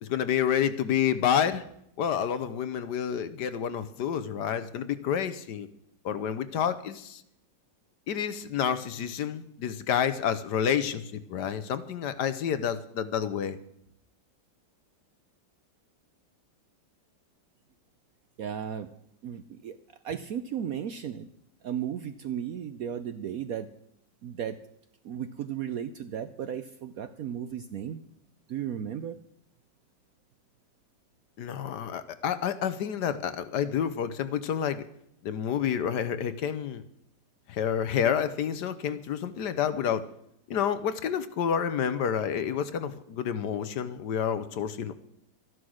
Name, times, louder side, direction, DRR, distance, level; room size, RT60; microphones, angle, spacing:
voice 1, 0.0-1.6 2.0-5.7 6.0-7.2 8.1-13.6 31.4-34.8 35.2-36.8 37.5-40.0 40.5-44.9, left 8 dB, 70° left, 12 dB, 1.3 m, -29 dB
voice 2, 18.4-18.9 19.2-19.8 20.0-21.3 21.6-23.7 24.2-24.6 25.0-28.0 28.5-29.2, right 9 dB, 70° right, 11 dB, 0.9 m, -35 dB
13.0 x 11.0 x 6.3 m, 0.74 s
omnidirectional pair, 2.0 m